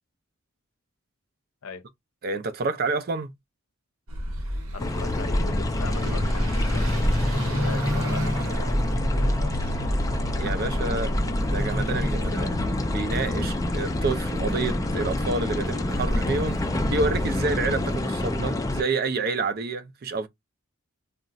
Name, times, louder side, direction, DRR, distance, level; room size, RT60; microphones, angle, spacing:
voice 1, 2.2-3.3 10.4-11.1 11.5-12.5 12.9-20.3, right 3 dB, 45° right, 0.5 m, -28 dB
Car passing by / Accelerating revving vroom, 4.1-15.3, equal, 85° right, 0.9 m, -31 dB
voice 2, 4.7-8.3 8.6-10.1 10.9-11.4 11.8-12.0 12.3-12.6, left 5 dB, 80° left, 0.6 m, -41 dB
sound 1, 4.8-18.8, left 1 dB, 15° left, 0.3 m, -27 dB
sound 2, 11.3-18.4, equal, 30° right, 0.9 m, -35 dB
2.4 x 2.1 x 3.9 m
head